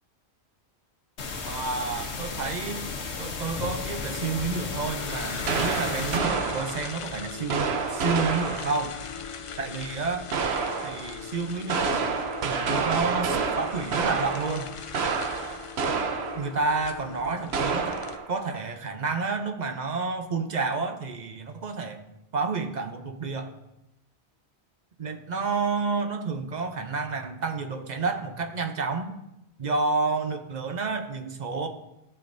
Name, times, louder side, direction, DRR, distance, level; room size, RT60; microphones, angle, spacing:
sound 1, 1.2-6.2, left 4 dB, 90° left, 1.3 m, -34 dB
voice 1, 1.5-2.9 3.2-9.0 9.6-10.3 10.8-12.1 12.4-14.7 16.3-18.0 18.3-22.0 22.3-23.5 25.0-29.1 29.6-31.7, right 4 dB, 45° right, 7 dB, 0.7 m, -30 dB
sound 2, 3.5-18.2, left 6 dB, 50° left, 0.4 m, -39 dB
sound 3, 5.5-7.0 7.5-8.9 10.3-11.1 11.5-16.6 16.9-17.0 17.5-18.4, right 5 dB, 70° right, 1.0 m, -28 dB
13.5 x 7.0 x 2.6 m, 0.89 s
omnidirectional pair, 1.1 m